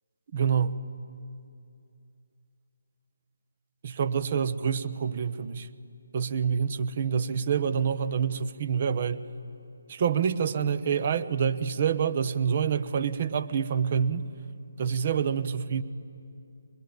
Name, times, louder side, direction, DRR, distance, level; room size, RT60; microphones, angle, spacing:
voice 1, 0.3-0.8 3.8-5.7 6.1-9.2 9.9-14.3 14.8-15.8, right 7 dB, 40° right, 11 dB, 1.0 m, -27 dB
23.5 x 21.0 x 9.3 m, 2.6 s
figure-of-eight pair, 150°, 0 cm